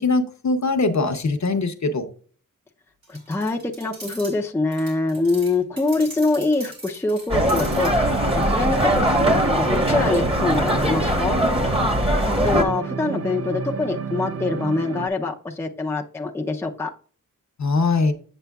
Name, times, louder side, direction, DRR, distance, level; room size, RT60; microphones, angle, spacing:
voice 1, 0.0-2.1 17.6-18.1, left 3 dB, 55° left, 0.8 m, -21 dB
sound 1, 3.0-4.4 4.7-7.9, right 2 dB, 85° right, 2.8 m, -40 dB
voice 2, 3.1-11.4 12.2-16.9, left 3 dB, 5° left, 0.5 m, -24 dB
sound 2, 7.3-12.6, equal, 15° right, 1.1 m, -21 dB
sound 3, 7.5-15.1, right 6 dB, 45° right, 0.4 m, -31 dB
8.0 x 6.6 x 2.3 m
wide cardioid pair, 110°, 34 cm